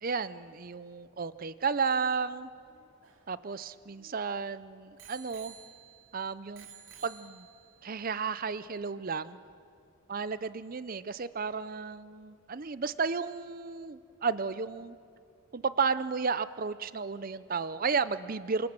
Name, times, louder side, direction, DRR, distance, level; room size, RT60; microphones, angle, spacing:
voice 1, 0.0-2.5 3.3-5.5 6.1-6.7 7.0-7.5 7.8-9.4 10.1-15.0 15.5-18.7, right 5 dB, 40° right, 14 dB, 0.6 m, -33 dB
Bicycle bell, 2.7-4.3 5.0-6.1 6.5-7.8 8.5-8.6, right 8 dB, 60° right, 2.8 m, -53 dB
28.5 x 25.5 x 7.5 m, 2.4 s
head